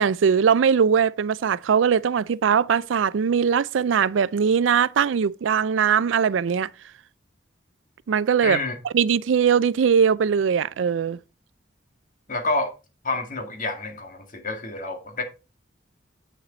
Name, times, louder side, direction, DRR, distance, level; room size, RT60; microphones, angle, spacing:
voice 1, 0.0-6.7 8.1-8.6 8.9-11.2, right 7 dB, 80° right, 0.4 m, -20 dB
voice 2, 8.4-8.7 12.3-12.7 13.0-15.2, left 2 dB, 45° left, 2.0 m, -28 dB
8.2 x 7.1 x 3.9 m
head